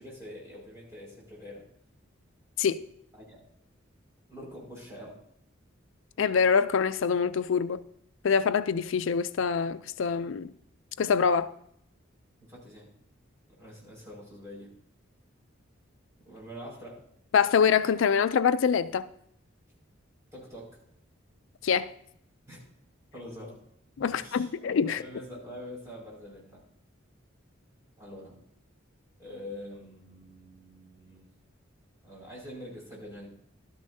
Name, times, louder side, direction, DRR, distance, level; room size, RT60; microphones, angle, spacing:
voice 1, 0.0-1.7 3.1-3.4 4.3-5.2 12.5-12.9 13.6-14.7 16.3-17.0 20.3-20.8 22.5-22.6 23.1-23.6 24.1-24.5 24.8-26.6 28.0-28.4 29.2-31.3 32.0-33.3, equal, 15° right, 5.3 m, -45 dB
voice 2, 6.2-7.8 8.2-10.5 11.0-11.5 17.3-19.1 21.6-21.9 24.0-25.0, left 6 dB, 75° left, 0.4 m, -25 dB
14.0 x 12.5 x 2.7 m
head